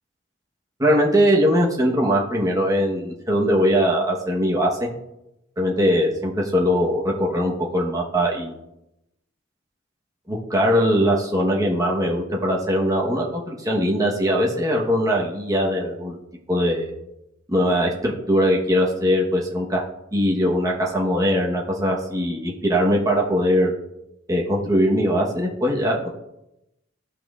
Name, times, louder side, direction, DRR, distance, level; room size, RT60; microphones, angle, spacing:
voice 1, 0.8-4.9 5.6-8.6 10.3-16.2 16.5-16.9 17.5-19.8 20.1-23.7 24.3-26.1, equal, 15° right, -2 dB, 1.1 m, -21 dB
14.5 x 5.9 x 2.4 m, 0.88 s
head